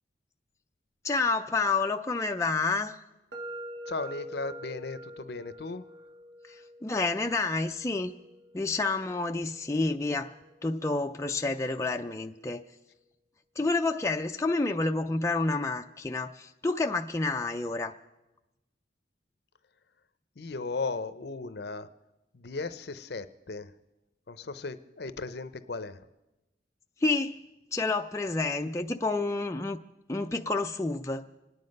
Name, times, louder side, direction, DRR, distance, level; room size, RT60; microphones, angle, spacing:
voice 1, 1.0-3.0 6.5-8.1 8.5-10.3 10.6-12.6 13.6-17.9 27.0-27.4 27.7-29.8 30.1-31.3, left 3 dB, 15° left, 4 dB, 0.4 m, -29 dB
sound 1, 3.3-11.2, equal, 65° right, 1.4 m, -46 dB
voice 2, 3.9-5.8 20.4-21.9 22.3-23.7 24.3-26.1, left 3 dB, 60° left, 12 dB, 0.6 m, -36 dB
26.0 x 9.7 x 5.3 m, 1.0 s
head